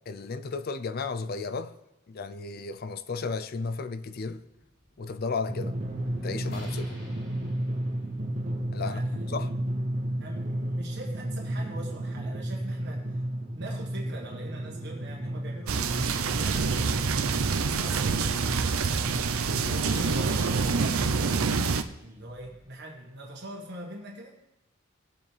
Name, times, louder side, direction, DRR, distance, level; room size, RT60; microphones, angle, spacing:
voice 1, 0.1-1.7 2.1-4.4 5.0-5.7 6.2-7.0 8.7-9.0 9.3-9.5 19.5-19.8, left 4 dB, 45° left, 0.5 m, -34 dB
sound 1, 4.4-22.7, equal, 75° left, 3.4 m, -51 dB
Drum, 5.5-21.7, right 1 dB, 35° right, 0.8 m, -34 dB
voice 2, 8.8-9.1 10.2-13.2 13.5-16.0 16.3-17.0 17.8-18.4 19.6-24.4, right 1 dB, 55° right, 1.5 m, -42 dB
sound 2, 15.7-21.8, right 5 dB, 90° right, 0.6 m, -26 dB
18.5 x 7.5 x 3.3 m
head